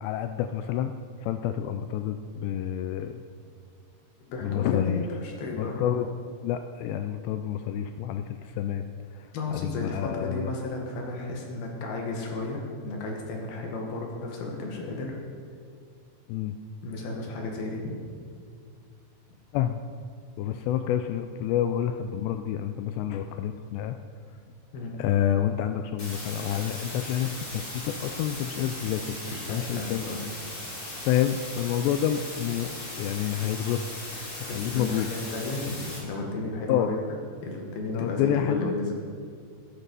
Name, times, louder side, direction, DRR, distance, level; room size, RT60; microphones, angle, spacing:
voice 1, 0.0-0.9 1.2-3.2 4.4-5.1 5.6-6.1 6.4-8.9 9.5-10.5 16.3-16.6 19.5-19.8 20.4-24.0 25.0-29.2 29.5-30.2 31.0-33.8 34.4-35.1 36.7-37.0 37.9-38.7, left 10 dB, 85° left, 8 dB, 2.5 m, -28 dB
voice 2, 4.3-6.0 9.3-15.2 16.8-17.9 24.7-25.0 29.2-30.2 34.5-37.2 37.4-39.0, left 2 dB, 60° left, 1 dB, 3.2 m, -33 dB
sound 1, 26.0-36.0, left 1 dB, 25° left, 2.4 m, -38 dB
13.5 x 11.5 x 5.5 m, 2.1 s
omnidirectional pair, 5.3 m